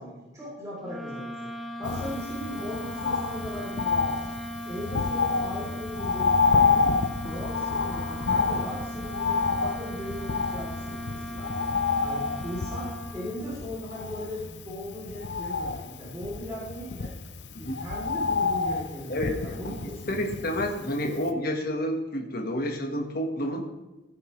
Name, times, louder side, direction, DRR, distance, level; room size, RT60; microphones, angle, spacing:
voice 1, 0.0-1.5 1.8-4.3 4.6-7.0 7.2-11.7 12.0-17.1 17.6-20.5, equal, 20° right, -7 dB, 3.6 m, -38 dB
sound 1, 0.8-13.5, equal, ahead, 1.2 m, -38 dB
Bird, 1.8-20.9 21.3-21.4, left 5 dB, 70° left, 0.8 m, -29 dB
voice 2, 19.1-19.6 20.1-23.6, equal, 55° left, 2 dB, 1.6 m, -29 dB
16.5 x 9.4 x 3.3 m, 1.0 s
head